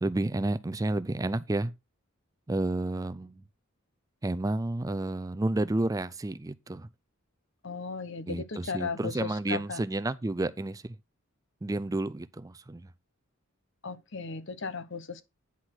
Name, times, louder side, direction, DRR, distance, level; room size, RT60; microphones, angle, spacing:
voice 1, 0.0-1.7 2.5-3.4 4.2-6.9 8.3-11.0 11.6-12.9, right 2 dB, 15° right, 0.4 m, -31 dB
voice 2, 7.6-9.8 13.8-15.2, left 5 dB, 60° left, 1.0 m, -36 dB
9.7 x 4.4 x 5.9 m
head